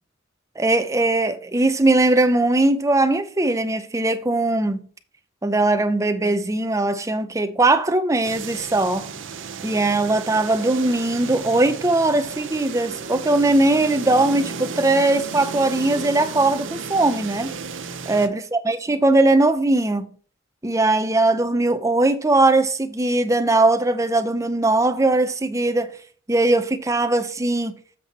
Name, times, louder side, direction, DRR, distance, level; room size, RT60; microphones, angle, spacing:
voice 1, 0.6-4.8 5.4-9.1 9.6-17.5 18.1-20.1 20.6-25.9 26.3-27.7, right 2 dB, 15° right, 0.6 m, -20 dB
sound 1, 8.2-18.3, right 5 dB, 65° right, 0.7 m, -33 dB
7.6 x 5.7 x 4.1 m
head